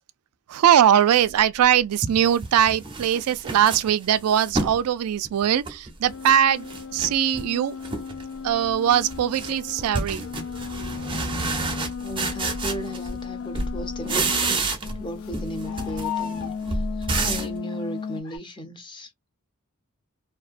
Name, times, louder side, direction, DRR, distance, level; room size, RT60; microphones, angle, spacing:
voice 1, 0.5-7.8 8.4-10.2, right 10 dB, 80° right, 0.3 m, -21 dB
sound 1, 1.4-1.5 2.0-4.8 5.2-6.4 6.7-7.5 7.8-8.3 8.6-13.3 13.5-15.1 15.3-17.6, right 3 dB, 20° right, 0.5 m, -30 dB
sound 2, 5.8-5.9 9.2-9.3 11.3-11.4 14.0-14.3 15.6-16.7 17.7-17.8 18.2-18.4, left 10 dB, 80° left, 1.2 m, -35 dB
sound 3, 6.0-14.6 14.8-18.2, left 6 dB, 65° left, 0.3 m, -35 dB
voice 2, 12.0-14.6 14.9-19.1, equal, 20° left, 0.6 m, -36 dB
2.6 x 2.2 x 2.4 m
head